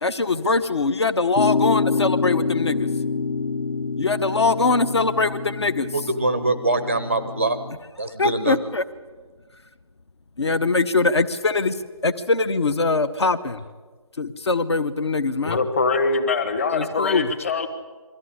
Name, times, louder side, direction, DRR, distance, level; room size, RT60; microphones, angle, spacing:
voice 1, 0.0-2.9 4.0-5.9 8.2-8.8 10.4-11.8 12.0-13.6 14.2-15.6 16.7-17.3, left 3 dB, 50° left, 12 dB, 1.0 m, -22 dB
sound 1, 1.4-7.8, left 4 dB, 70° left, 0.9 m, -26 dB
voice 2, 5.9-7.6 8.0-8.6, right 2 dB, 20° right, 10 dB, 0.6 m, -23 dB
voice 3, 15.4-17.7, left 4 dB, 25° left, 8 dB, 1.3 m, -23 dB
22.5 x 14.5 x 9.9 m, 1.4 s
figure-of-eight pair, 170°, 19 cm